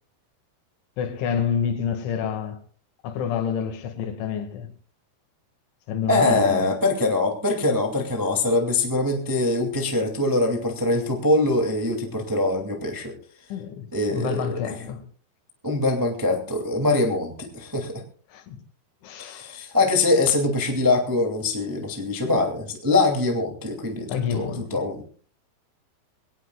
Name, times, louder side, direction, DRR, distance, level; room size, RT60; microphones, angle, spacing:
voice 1, 1.0-2.6 3.0-4.7 5.9-6.7 13.5-15.0 18.3-18.6 19.0-19.6 24.1-24.8, left 7 dB, 85° left, 4.4 m, -28 dB
voice 2, 6.1-13.1 13.9-14.8 15.6-18.0 19.2-25.0, left 2 dB, 25° right, 0.4 m, -23 dB
24.0 x 18.0 x 2.4 m
omnidirectional pair, 5.3 m